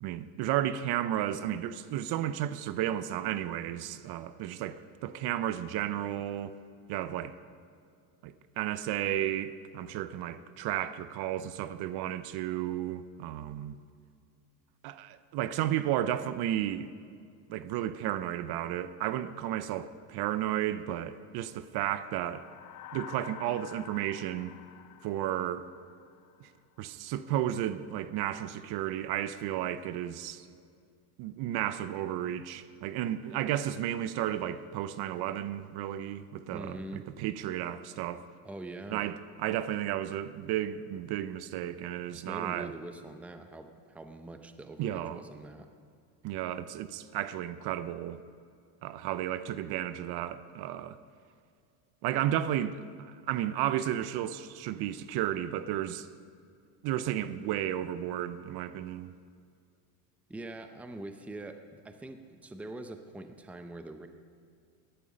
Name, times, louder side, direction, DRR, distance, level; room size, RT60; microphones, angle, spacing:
voice 1, 0.0-6.6 6.9-7.3 8.2-13.8 14.8-16.9 17.5-22.5 22.9-24.5 25.0-25.7 26.4-26.5 26.8-30.5 31.2-38.2 38.9-42.7 44.8-45.2 46.2-48.2 48.8-51.0 52.0-56.1 56.8-59.1, right 12 dB, 55° right, 0.7 m, -33 dB
sound 1, 22.0-26.5, left 11 dB, 40° left, 0.8 m, -49 dB
voice 2, 36.5-37.1 38.4-39.0 42.1-45.7 60.3-64.1, right 2 dB, 5° right, 0.6 m, -43 dB
16.5 x 11.5 x 5.1 m
cardioid pair, 130°, 46 cm